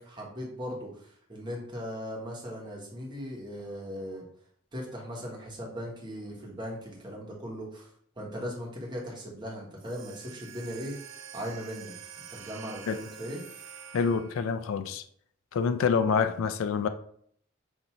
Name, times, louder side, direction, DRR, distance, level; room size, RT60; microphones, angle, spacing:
voice 1, 0.0-4.2 4.7-7.9 8.2-10.9 11.3-11.9 12.3-13.4, equal, 20° right, 1.0 m, -38 dB
sound 1, 9.8-14.6, right 7 dB, 70° right, 0.5 m, -47 dB
voice 2, 13.9-15.0 15.5-16.9, left 6 dB, 75° left, 0.3 m, -27 dB
5.5 x 2.6 x 2.9 m
head